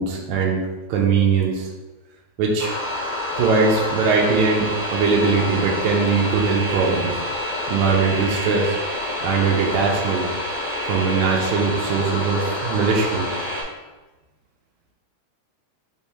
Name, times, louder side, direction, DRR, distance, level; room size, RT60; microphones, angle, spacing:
voice 1, 0.0-1.7 2.4-2.7 3.4-7.2 7.7-8.8 9.2-10.3 10.9-13.3, right 5 dB, 80° right, -1 dB, 2.0 m, -21 dB
sound 1, 2.6-13.6, left 1 dB, 55° left, 0.9 m, -28 dB
5.3 x 3.5 x 2.8 m, 1.2 s
omnidirectional pair, 3.5 m